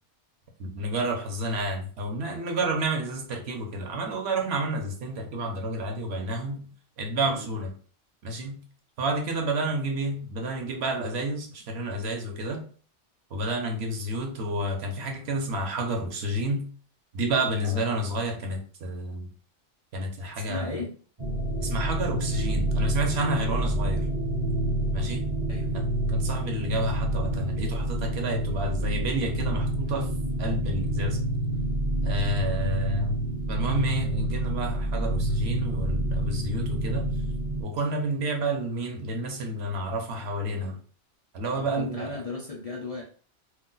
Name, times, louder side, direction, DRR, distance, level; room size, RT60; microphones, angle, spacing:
voice 1, 0.6-6.7 7.0-7.7 8.2-8.6 9.0-12.6 13.3-16.7 17.1-19.3 19.9-20.7 21.6-24.1 24.9-25.3 26.1-30.1 30.4-31.2 32.0-33.1 33.5-37.1 37.6-40.8 41.3-42.2, right 1 dB, 65° right, 2 dB, 0.9 m, -30 dB
voice 2, 17.6-18.0 20.3-20.9 25.5-25.7 32.5-32.8 41.5-43.0, left 3 dB, 45° left, -2 dB, 0.5 m, -36 dB
sound 1, 21.2-37.6, right 1 dB, 30° right, 0.6 m, -28 dB
2.4 x 2.1 x 3.8 m, 0.42 s
omnidirectional pair, 1.2 m